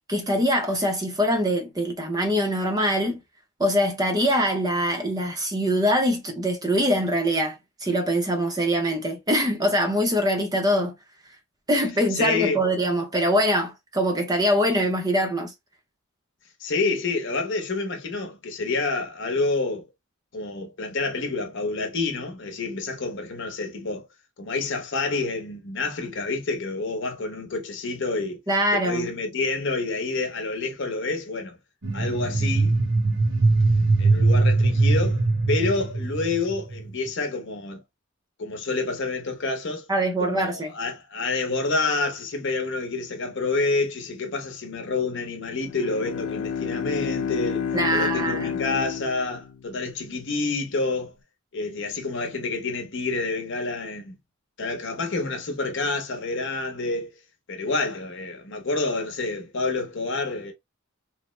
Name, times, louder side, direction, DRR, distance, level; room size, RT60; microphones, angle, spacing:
voice 1, 0.1-3.2 3.6-10.9 11.7-15.5 28.5-29.1 39.9-40.7 47.7-48.5, equal, 15° right, 0.6 m, -23 dB
voice 2, 12.1-12.6 16.6-19.8 20.3-24.1 24.4-28.4 28.7-31.6 31.9-32.8 34.0-37.8 38.4-39.9 40.2-51.1 51.5-54.2 54.6-57.1 57.5-60.5, left 3 dB, 55° left, 0.8 m, -28 dB
sound 1, 31.8-36.9, right 3 dB, 60° right, 0.9 m, -21 dB
Bowed string instrument, 45.5-49.9, left 7 dB, 80° left, 0.4 m, -30 dB
3.0 x 2.0 x 3.1 m
head